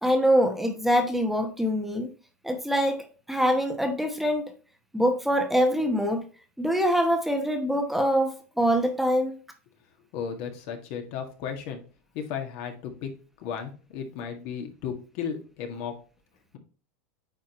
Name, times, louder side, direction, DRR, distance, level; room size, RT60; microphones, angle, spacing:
voice 1, 0.0-2.1 2.4-4.5 4.9-6.2 6.6-9.4, equal, ahead, 0.9 m, -24 dB
voice 2, 10.1-11.8 12.1-13.1 13.4-16.0, left 7 dB, 60° left, 1.8 m, -34 dB
8.7 x 4.6 x 3.0 m
supercardioid pair, 125°, 8 cm